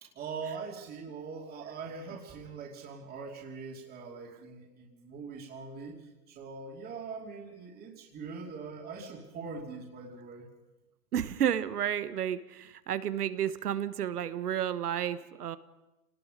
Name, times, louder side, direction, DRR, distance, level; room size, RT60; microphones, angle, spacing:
voice 1, 0.0-10.5, right 5 dB, 20° right, 0 dB, 2.8 m, -42 dB
voice 2, 11.1-15.6, right 10 dB, 75° right, 14 dB, 1.4 m, -31 dB
27.0 x 19.0 x 5.1 m, 0.98 s
hypercardioid pair, 140°, 46 cm